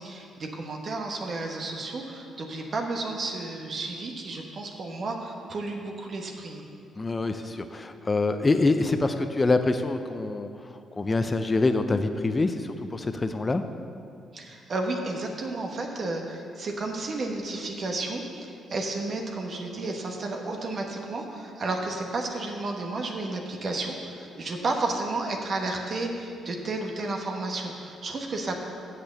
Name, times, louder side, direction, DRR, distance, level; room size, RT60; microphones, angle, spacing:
voice 1, 0.0-6.6 14.3-28.6, right 2 dB, 50° right, 2 dB, 1.2 m, -32 dB
voice 2, 7.0-10.5 11.0-13.6, left 3 dB, 25° left, 8 dB, 0.5 m, -25 dB
7.8 x 6.8 x 6.9 m, 2.4 s
cardioid pair, 90°, 0 cm